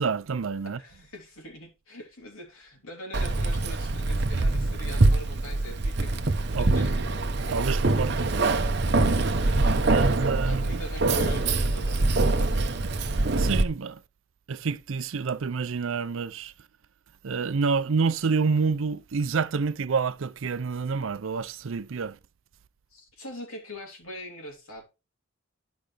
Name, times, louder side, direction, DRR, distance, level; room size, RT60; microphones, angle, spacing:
voice 1, 0.0-0.8 6.5-6.9 7.5-8.5 9.9-10.8 13.4-14.0 14.5-16.5 17.2-22.2, right 5 dB, 70° right, 0.5 m, -28 dB
voice 2, 0.6-6.2 6.6-6.9 9.1-12.6 22.9-24.8, equal, 85° left, 3.2 m, -43 dB
Keys jangling, 3.1-13.6, right 2 dB, 50° right, 0.9 m, -24 dB
12.5 x 5.1 x 3.3 m
head